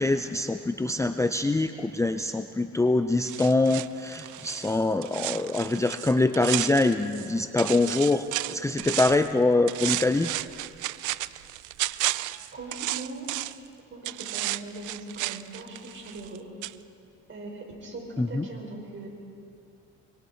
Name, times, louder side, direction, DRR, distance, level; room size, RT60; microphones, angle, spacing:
voice 1, 0.0-10.3 18.2-18.5, left 2 dB, 10° left, 8 dB, 0.5 m, -24 dB
sound 1, 3.3-7.3 7.6-9.3 9.7-13.7 14.0-16.4 16.6-16.7, right 16 dB, 80° right, 0.5 m, -33 dB
voice 2, 12.5-13.6 13.9-16.4 17.3-19.1, right 2 dB, 40° right, 0 dB, 5.4 m, -40 dB
24.5 x 24.0 x 4.5 m, 2.7 s
cardioid pair, 90°, 30 cm